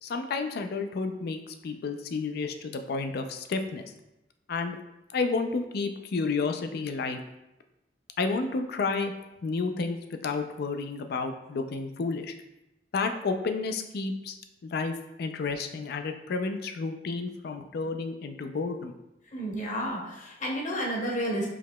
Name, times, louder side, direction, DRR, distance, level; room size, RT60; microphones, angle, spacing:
voice 1, 0.0-3.8 4.5-4.8 5.1-7.2 8.2-9.1 9.4-10.0 10.2-12.4 12.9-14.4 14.6-18.9, left 4 dB, 60° left, 7 dB, 0.4 m, -31 dB
voice 2, 19.3-21.5, equal, 45° left, -2 dB, 0.8 m, -31 dB
4.7 x 2.9 x 2.2 m, 0.92 s
head